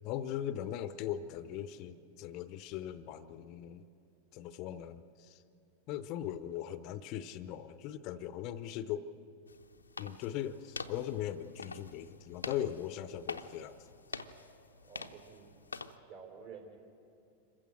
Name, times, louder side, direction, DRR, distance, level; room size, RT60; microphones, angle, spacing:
voice 1, 0.0-3.8 4.3-5.4 5.9-9.1 10.0-13.9, left 11 dB, 40° left, 14 dB, 0.7 m, -39 dB
sound 1, 9.5-16.0, left 4 dB, 80° left, 0.7 m, -46 dB
voice 2, 14.8-15.5 16.1-16.8, right 6 dB, 50° right, 2 dB, 3.8 m, -50 dB
26.5 x 15.0 x 7.7 m, 2.6 s
figure-of-eight pair, 90°, 0 cm